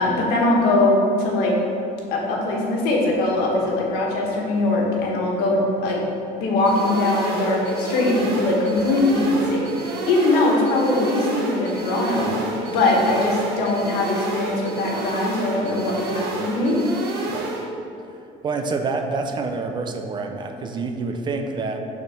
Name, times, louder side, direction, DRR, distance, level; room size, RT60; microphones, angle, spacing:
voice 1, 0.0-1.6 2.1-6.0 6.3-12.4 12.7-16.8, left 2 dB, 80° left, -1 dB, 1.5 m, -21 dB
sound 1, 6.7-17.7, right 2 dB, 75° right, 1.3 m, -30 dB
voice 2, 18.4-21.9, right 3 dB, 30° right, 5 dB, 0.5 m, -27 dB
6.6 x 4.3 x 5.8 m, 2.7 s
cardioid pair, 165°, 16 cm